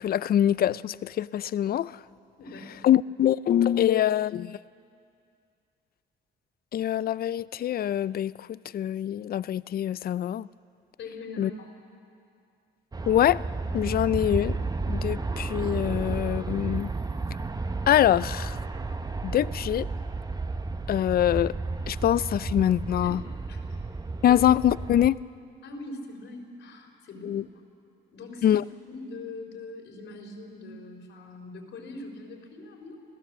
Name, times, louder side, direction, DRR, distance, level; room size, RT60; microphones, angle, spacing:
voice 1, 0.0-2.0 2.8-4.6 6.7-10.5 11.4-11.5 13.1-13.4 13.7-16.9 17.9-18.6 19.2-19.9 20.9-21.6 21.9-23.2 24.2-25.2 27.2-27.4 28.4-28.6, left 11 dB, 50° left, 0.4 m, -24 dB
voice 2, 2.4-2.9 11.0-11.7 23.0-23.1 23.5-23.6 24.3-24.4 25.6-27.4 28.1-28.6 28.9-33.0, left 2 dB, 75° left, 4.0 m, -42 dB
Aircraft, 12.9-25.1, right 3 dB, 20° right, 0.9 m, -32 dB
26.0 x 16.0 x 7.4 m
cardioid pair, 90°, 20 cm